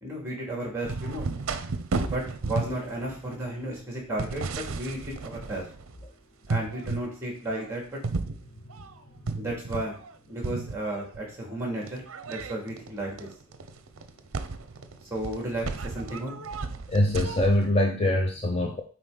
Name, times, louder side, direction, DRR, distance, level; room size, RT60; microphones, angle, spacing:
voice 1, 0.0-1.3 2.1-5.6 6.5-8.0 9.3-10.0 10.3-13.3 15.1-16.4, right 1 dB, 10° right, -1 dB, 2.5 m, -33 dB
sound 1, 0.8-6.0 6.4-7.1 7.5-10.2 10.4-11.2 11.8-17.7, right 3 dB, 70° right, 0.6 m, -34 dB
voice 2, 16.9-18.8, left 1 dB, 30° left, 2 dB, 0.6 m, -24 dB
8.0 x 4.6 x 3.9 m, 0.42 s
head